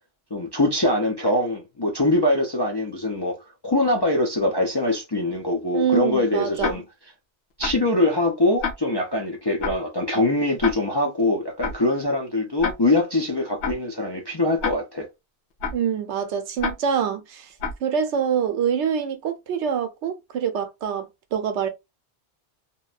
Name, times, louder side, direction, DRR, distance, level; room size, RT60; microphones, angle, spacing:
voice 1, 0.3-3.4 3.6-6.8 7.6-15.1, left 2 dB, 40° left, 0.3 m, -23 dB
voice 2, 5.7-6.8 15.7-17.5 17.8-21.7, right 7 dB, 80° right, 0.9 m, -25 dB
Tick-tock, 6.6-6.7 7.6-7.7 8.6-8.7 9.6-9.7 10.6-10.7 11.6-11.7 12.6-12.7 13.6-13.7 14.6-14.7 15.6-15.7 16.6-16.7 17.6-17.7, left 5 dB, 75° left, 1.0 m, -26 dB
2.8 x 2.1 x 2.3 m
omnidirectional pair, 1.2 m